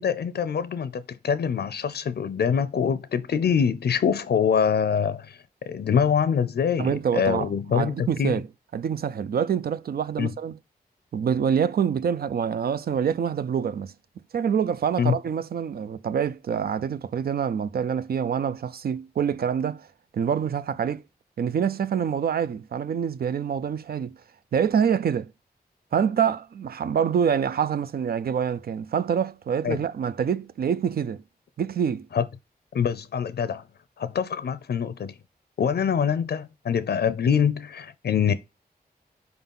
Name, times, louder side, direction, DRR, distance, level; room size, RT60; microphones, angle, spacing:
voice 1, 0.0-8.4 10.2-10.3 15.0-15.2 29.6-29.8 32.1-32.3 32.7-33.6 34.0-35.2 35.6-38.3, left 7 dB, 85° left, 0.5 m, -24 dB
voice 2, 6.8-8.4 8.7-10.6 11.1-13.9 14.3-19.9 20.1-21.0 21.4-24.2 24.5-25.3 25.9-31.2 31.6-32.1, right 7 dB, 70° right, 0.4 m, -26 dB
4.7 x 3.9 x 5.4 m
wide cardioid pair, 120°, 16 cm